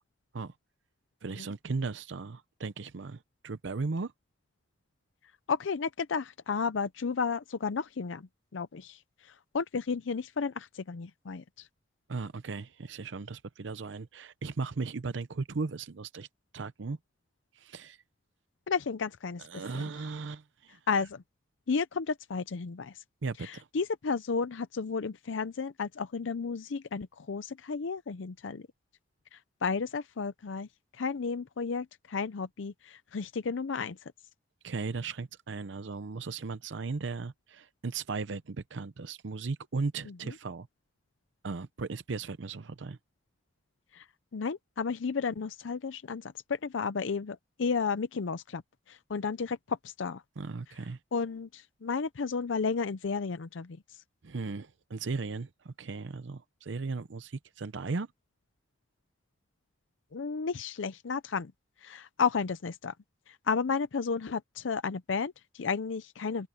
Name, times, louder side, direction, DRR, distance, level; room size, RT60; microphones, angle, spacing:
voice 1, 1.2-3.2 3.4-4.1 12.1-16.3 16.5-17.0 17.6-18.0 19.5-20.8 23.2-23.7 34.6-40.7 41.4-43.0 50.4-51.0 54.2-58.1, right 4 dB, 80° right, 0.6 m, -36 dB
voice 2, 5.5-11.7 18.7-19.8 20.9-21.2 21.7-23.0 23.4-28.7 29.3-30.7 31.0-34.0 40.1-40.3 43.9-44.1 44.3-48.6 48.9-50.2 51.1-53.8 60.1-61.5 61.8-62.9 63.3-66.5, left 5 dB, 85° left, 0.6 m, -33 dB
open air
head